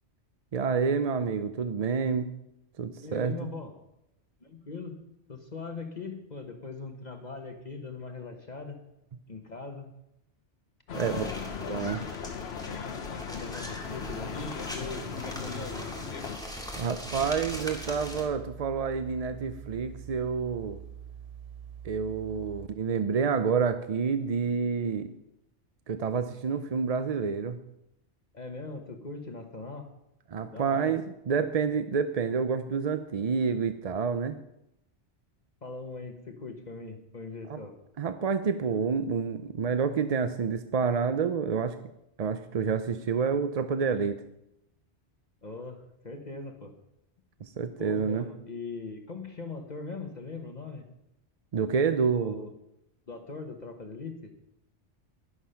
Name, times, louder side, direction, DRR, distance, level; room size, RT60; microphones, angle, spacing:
voice 1, 0.5-2.3 2.8-3.5 10.9-11.3 11.7-12.0 16.8-20.8 21.8-25.1 25.9-27.6 30.3-34.4 37.5-37.6 38.0-41.8 42.2-44.2 47.4-48.3 51.5-52.4, right 5 dB, 45° right, 10 dB, 0.5 m, -28 dB
voice 2, 3.0-3.7 4.4-5.0 5.3-8.8 9.3-9.9 11.1-11.5 13.1-15.8 28.3-29.9 30.5-30.9 35.6-37.8 45.4-46.7 47.8-50.9 52.1-52.5 53.1-54.3, left 3 dB, 40° left, 5 dB, 1.2 m, -40 dB
sound 1, 10.9-16.4, left 7 dB, 65° left, 1.1 m, -38 dB
sound 2, 10.9-18.3, equal, 5° left, 2.1 m, -40 dB
11.5 x 11.0 x 5.7 m, 0.84 s
omnidirectional pair, 1.2 m